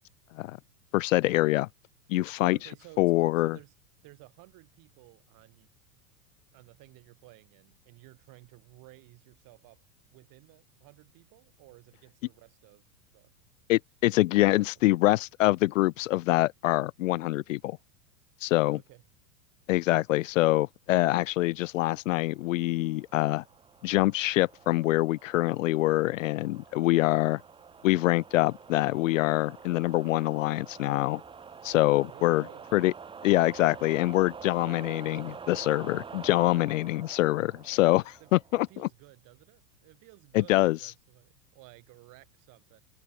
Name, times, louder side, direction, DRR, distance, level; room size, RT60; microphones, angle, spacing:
voice 1, 0.9-1.7 2.1-2.6 3.0-3.6 13.7-17.8 18.4-18.8 19.7-23.4 23.8-27.4 27.8-31.2 31.6-32.4 32.7-32.9 33.2-38.7 40.3-40.8, left 18 dB, 60° left, 0.5 m, -25 dB
voice 2, 2.5-3.7 4.0-5.7 6.5-9.8 10.1-13.3 14.4-14.8 18.6-19.0 32.0-32.6 33.8-33.9 38.2-42.8, right 22 dB, 45° right, 6.8 m, -55 dB
sound 1, 22.2-38.7, right 6 dB, 10° right, 0.8 m, -47 dB
figure-of-eight pair, 90°, 44 cm